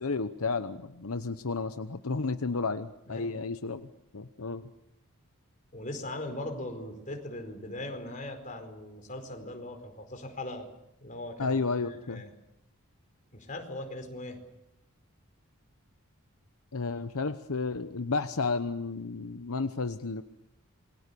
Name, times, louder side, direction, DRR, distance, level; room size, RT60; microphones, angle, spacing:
voice 1, 0.0-3.9 4.1-4.7 11.4-12.2 16.7-20.2, left 4 dB, 75° left, 10 dB, 0.9 m, -32 dB
voice 2, 5.7-10.7 11.0-12.3 13.3-14.4, left 1 dB, 35° left, 5 dB, 4.6 m, -39 dB
28.0 x 22.5 x 6.9 m, 0.82 s
head